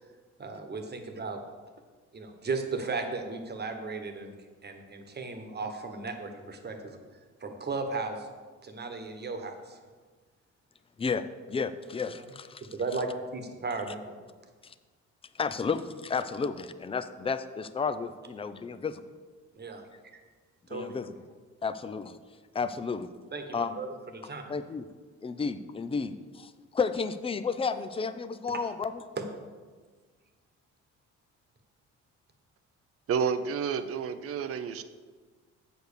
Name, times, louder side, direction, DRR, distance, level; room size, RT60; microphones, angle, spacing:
voice 1, 0.4-1.4 2.1-4.3 4.6-7.0 7.4-8.3 8.6-9.8 12.1-12.2 12.7-14.1 19.5-19.8 20.7-21.0 23.3-24.5 29.2-29.3, right 3 dB, 35° right, 5 dB, 1.3 m, -35 dB
voice 2, 11.0-12.6 14.6-14.7 15.4-19.0 20.7-21.1 21.6-22.2 22.5-23.1 23.5-23.8 24.5-24.8 25.2-28.9, left 5 dB, 20° left, 12 dB, 0.5 m, -32 dB
voice 3, 33.1-34.8, right 6 dB, 50° right, 11 dB, 0.6 m, -30 dB
7.8 x 5.2 x 6.6 m, 1.5 s
cardioid pair, 90°, 30 cm